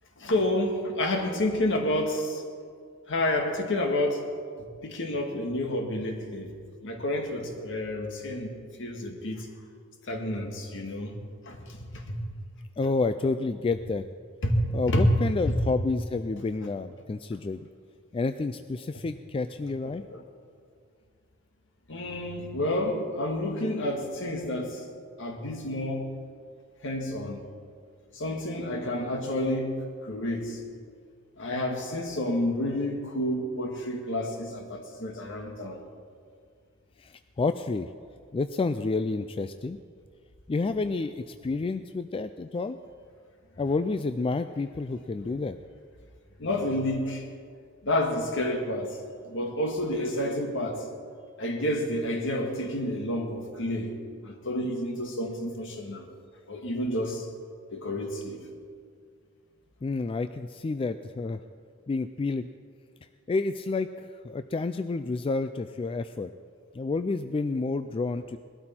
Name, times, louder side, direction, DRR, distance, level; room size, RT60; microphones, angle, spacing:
voice 1, 0.2-2.4 3.1-4.2 4.6-6.5 6.8-9.5 10.1-11.2 11.5-12.2 14.4-15.1 15.5-15.6 19.9-20.2 21.9-24.8 25.2-26.1 26.8-27.4 28.1-29.7 30.0-30.6 31.4-35.8 46.4-47.2 47.8-49.0 49.2-50.8 51.4-56.1 56.5-57.3 57.7-58.4, left 1 dB, 65° left, 3 dB, 1.8 m, -29 dB
voice 2, 12.8-14.0 14.7-17.6 18.1-20.0 37.0-37.9 38.3-39.8 40.5-42.8 43.6-45.6 59.8-61.4 61.9-62.5 63.3-66.3 66.7-68.4, left 3 dB, 25° left, 10 dB, 0.3 m, -29 dB
20.0 x 12.5 x 4.4 m, 2.1 s
head